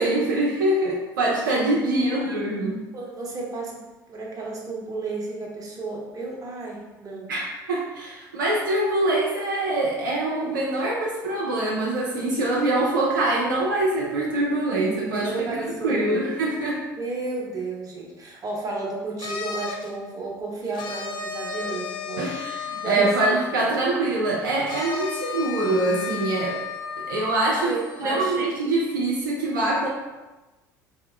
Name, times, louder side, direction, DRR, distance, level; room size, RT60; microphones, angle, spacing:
voice 1, 0.0-2.8 7.3-16.9 22.2-26.6 27.0-27.7 28.0-29.9, right 2 dB, 80° right, -4 dB, 0.6 m, -24 dB
voice 2, 1.9-2.5 2.9-3.8 4.1-7.3 15.2-16.3 17.0-23.1 27.6-28.4, right 3 dB, 35° right, -2 dB, 1.0 m, -32 dB
sound 1, 19.2-19.9 20.7-23.8 24.7-28.6, left 6 dB, 45° left, 0.5 m, -34 dB
3.6 x 2.1 x 3.4 m, 1.1 s
figure-of-eight pair, 65°, 11 cm